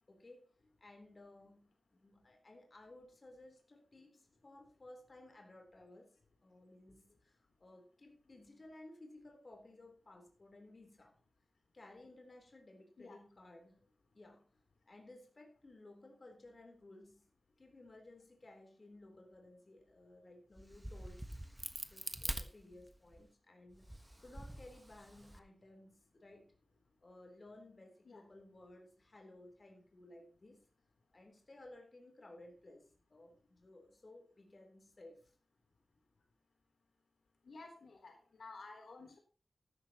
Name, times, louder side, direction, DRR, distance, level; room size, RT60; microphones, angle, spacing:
voice 1, 0.1-0.5 0.8-6.1 6.4-11.2 11.7-13.8 14.1-14.5 14.9-17.2 17.6-21.3 21.9-24.0 24.2-26.5 27.0-30.6 31.1-35.3, left 2 dB, 40° left, 2 dB, 3.8 m, -58 dB
Crack, 20.6-23.2 23.7-25.4, right 1 dB, 10° right, 1.3 m, -45 dB
voice 2, 37.5-39.2, left 3 dB, 75° left, 3 dB, 3.5 m, -53 dB
13.5 x 13.0 x 3.0 m, 0.38 s
wide cardioid pair, 125°, 0 cm